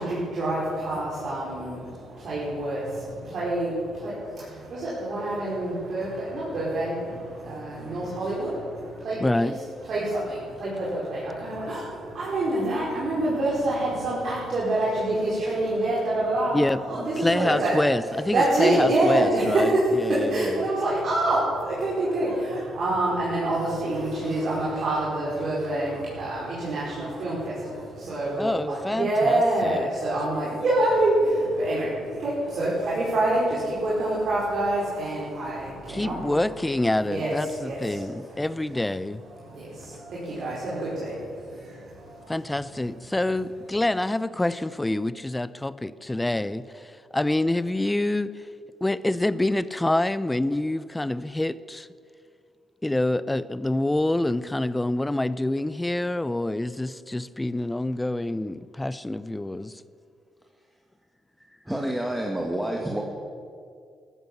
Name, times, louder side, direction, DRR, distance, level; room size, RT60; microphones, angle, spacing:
voice 1, 0.0-9.5 9.9-17.8 18.2-36.4 37.0-38.8 39.4-42.5, right 1 dB, 60° right, -7 dB, 4.7 m, -27 dB
voice 2, 9.2-9.6 16.5-20.6 28.4-29.8 35.9-39.2 42.3-48.5 48.8-51.9 52.8-59.8, left 1 dB, 10° left, 16 dB, 0.6 m, -26 dB
voice 3, 61.4-63.0, right 1 dB, 5° right, 0 dB, 1.8 m, -29 dB
14.0 x 12.5 x 7.3 m, 2.3 s
cardioid pair, 90°, 0 cm